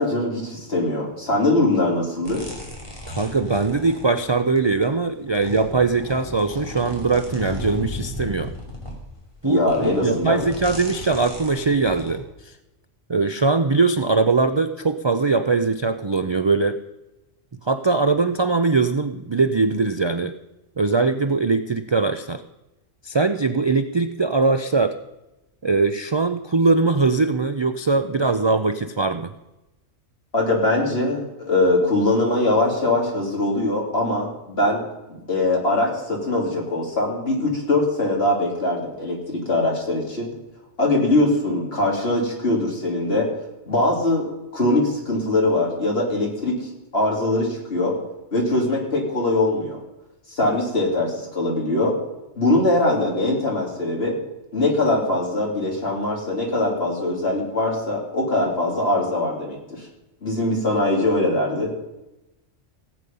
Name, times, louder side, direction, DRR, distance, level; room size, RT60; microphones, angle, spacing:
voice 1, 0.0-2.4 9.4-10.4 30.3-34.8 35.3-40.3 40.8-43.3 43.7-47.9 48.3-49.8 50.3-52.0 52.4-54.2 54.5-59.8 60.2-61.9, left 2 dB, 55° left, -1 dB, 3.4 m, -22 dB
sound 1, 2.2-4.8 5.3-12.2, left 1 dB, 25° left, 2.9 m, -35 dB
voice 2, 3.2-8.5 9.4-12.5 13.1-16.8 17.6-20.3 20.8-22.4 23.0-25.0 25.6-29.3, right 3 dB, 40° right, 9 dB, 0.4 m, -21 dB
17.0 x 8.5 x 5.4 m, 0.98 s
omnidirectional pair, 1.2 m